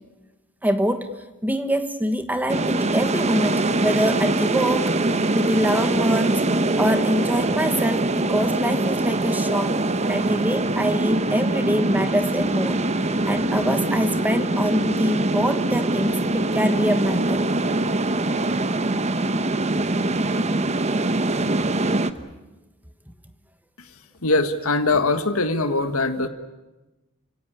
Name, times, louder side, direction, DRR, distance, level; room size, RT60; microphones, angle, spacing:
voice 1, 0.6-1.1 1.4-5.1 5.3-6.4 6.8-9.7 10.1-17.5, equal, 10° right, 9 dB, 1.3 m, -24 dB
sound 1, 2.5-22.1, right 2 dB, 30° right, 1.0 m, -23 dB
sound 2, 3.3-18.6, right 1 dB, 65° right, 3.0 m, -38 dB
voice 2, 24.2-26.3, left 3 dB, 85° left, 8 dB, 1.8 m, -21 dB
29.5 x 17.0 x 10.0 m, 1.1 s
head